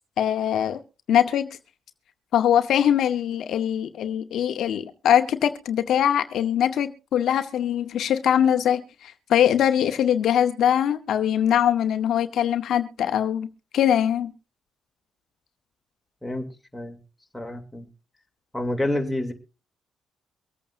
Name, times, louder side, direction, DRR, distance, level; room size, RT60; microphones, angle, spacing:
voice 1, 0.2-0.8 1.1-1.5 2.3-13.5 13.7-14.3, left 10 dB, 70° left, 9 dB, 0.8 m, -22 dB
voice 2, 17.3-17.9 18.5-19.3, left 1 dB, 5° left, 2 dB, 2.6 m, -28 dB
24.0 x 8.6 x 2.5 m, 0.32 s
cardioid pair, 90°, 0 cm